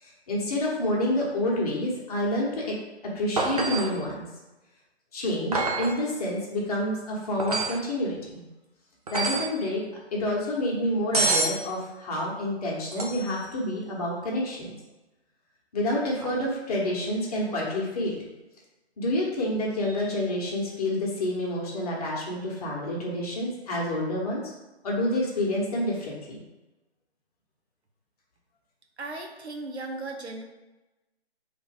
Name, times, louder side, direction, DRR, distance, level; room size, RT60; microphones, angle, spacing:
voice 1, 0.0-2.7 3.1-4.3 5.1-8.5 9.1-9.8 10.1-14.7 15.7-18.1 19.0-24.5 24.8-26.4, left 1 dB, 35° left, -4 dB, 1.3 m, -28 dB
sound 1, 3.4-4.0 5.5-6.0 7.4-7.8 9.1-9.6 11.1-11.6 12.9-13.4 16.2-16.3, right 3 dB, 35° right, 0.5 m, -27 dB
voice 2, 29.0-30.4, right 2 dB, 75° right, 3 dB, 1.0 m, -36 dB
4.2 x 3.4 x 3.5 m, 1.1 s
hypercardioid pair, 155°, 33 cm